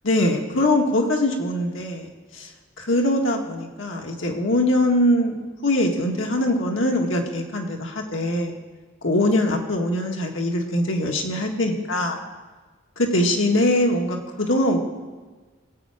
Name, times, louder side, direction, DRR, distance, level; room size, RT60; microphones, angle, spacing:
voice 1, 0.0-2.5 2.8-5.4 5.6-8.5 9.0-12.2 13.0-14.8, left 1 dB, 85° left, 2 dB, 1.8 m, -22 dB
20.5 x 8.5 x 5.0 m, 1.3 s
head